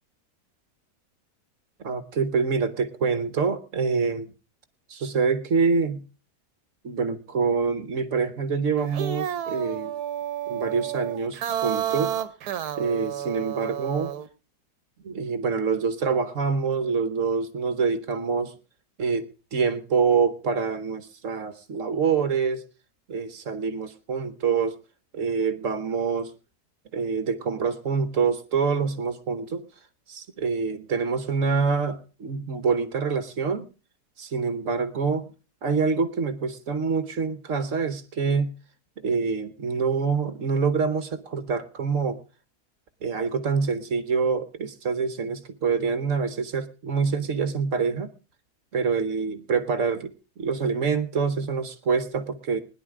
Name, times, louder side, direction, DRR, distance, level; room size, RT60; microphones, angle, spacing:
voice 1, 1.8-4.3 4.9-6.0 6.8-9.9 10.5-12.1 12.8-14.1 15.0-18.5 19.0-22.6 23.1-24.8 25.1-26.3 26.9-29.7 30.1-33.7 34.2-35.3 35.6-38.5 39.0-42.2 43.0-48.1 48.7-52.6, right 5 dB, 55° right, 11 dB, 1.3 m, -26 dB
sound 1, 8.8-14.3, right 10 dB, 75° right, 1.3 m, -31 dB
20.5 x 10.5 x 3.6 m, 0.32 s
omnidirectional pair, 1.7 m